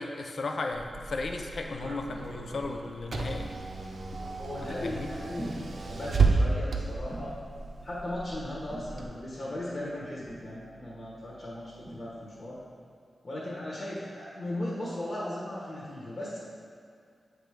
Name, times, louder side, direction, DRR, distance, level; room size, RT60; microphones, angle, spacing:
voice 1, 0.0-3.5 4.1-4.2 4.8-5.1, left 3 dB, 70° left, 3 dB, 0.5 m, -35 dB
Car / Engine, 0.7-9.0, right 4 dB, 60° right, 0.6 m, -32 dB
voice 2, 4.4-7.3 7.8-12.6 13.2-16.4, left 1 dB, 45° left, -7 dB, 1.4 m, -37 dB
sound 1, 4.4-4.7 5.3-12.7, right 1 dB, 30° right, 0.9 m, -47 dB
7.5 x 3.4 x 5.0 m, 2.3 s
wide cardioid pair, 85°, 0 cm